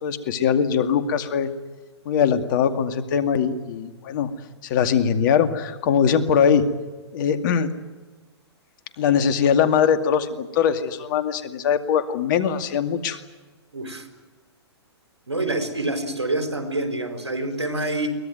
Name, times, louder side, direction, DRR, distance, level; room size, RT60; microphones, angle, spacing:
voice 1, 0.0-1.5 2.1-4.3 4.6-6.7 7.1-7.7 9.0-13.2, left 7 dB, 45° left, 9 dB, 2.3 m, -21 dB
voice 2, 13.7-14.1 15.3-18.2, right 1 dB, 90° right, 7 dB, 4.6 m, -26 dB
23.0 x 18.5 x 9.3 m, 1.2 s
hypercardioid pair, 125°, 14 cm